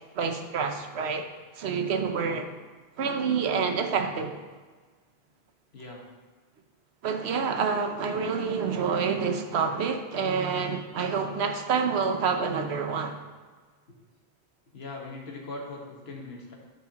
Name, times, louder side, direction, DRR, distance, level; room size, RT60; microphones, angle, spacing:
voice 1, 0.2-1.3 1.6-2.5 3.0-4.4 7.0-13.2, right 5 dB, 85° right, 6 dB, 1.0 m, -28 dB
voice 2, 14.7-16.6, left 2 dB, 75° left, -1 dB, 1.5 m, -40 dB
12.0 x 4.4 x 2.9 m, 1.4 s
omnidirectional pair, 1.1 m